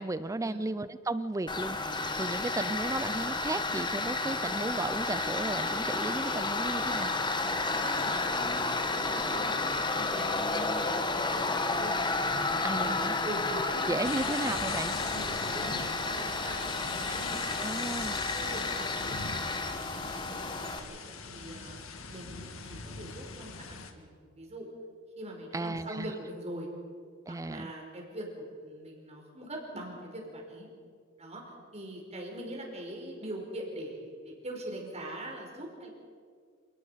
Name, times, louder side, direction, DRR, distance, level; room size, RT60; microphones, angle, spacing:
voice 1, 0.0-7.1 12.6-13.1 13.9-15.0 17.6-18.2 25.5-26.1 27.3-27.7, right 2 dB, 15° right, 14 dB, 0.4 m, -34 dB
Tools, 1.5-20.8, left 3 dB, 20° left, 1.3 m, -31 dB
voice 2, 7.7-8.5 8.7-11.9 12.5-14.3 15.1-17.8 18.3-19.2 19.7-21.0 21.3-21.8 22.1-24.7 25.2-26.7 27.3-30.7 31.2-35.9, right 1 dB, 30° right, 0 dB, 5.0 m, -42 dB
sound 1, 14.0-23.9, left 5 dB, 75° left, 1.8 m, -41 dB
27.5 x 19.0 x 5.8 m, 2.1 s
head